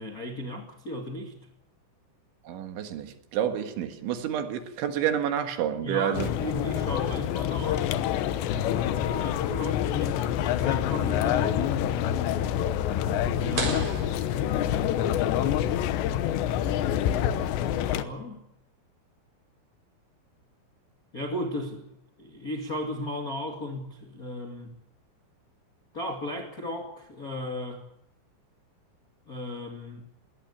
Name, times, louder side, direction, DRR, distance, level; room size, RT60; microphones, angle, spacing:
voice 1, 0.0-1.4 5.8-7.9 9.1-11.9 13.3-14.2 17.7-18.4 21.1-21.8 22.2-24.7 25.9-27.8 29.3-30.1, left 1 dB, 50° left, 1.0 m, -35 dB
voice 2, 2.5-6.3, right 9 dB, 70° right, 3.8 m, -29 dB
sound 1, 6.1-18.0, left 10 dB, 75° left, 2.9 m, -27 dB
sound 2, 13.6-15.2, right 4 dB, 45° right, 5.7 m, -35 dB
22.0 x 18.0 x 8.5 m
omnidirectional pair, 5.8 m